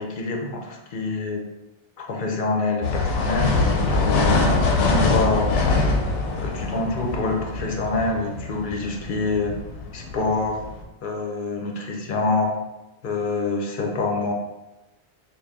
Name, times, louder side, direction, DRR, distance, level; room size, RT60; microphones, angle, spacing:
voice 1, 0.0-1.4 2.0-5.5 6.4-9.6 9.9-10.6 11.0-12.5 13.0-14.3, left 3 dB, 55° left, 1 dB, 0.7 m, -26 dB
sound 1, 2.8-10.8, left 3 dB, 90° left, 0.9 m, -24 dB
3.4 x 2.4 x 3.6 m, 1.0 s
omnidirectional pair, 1.2 m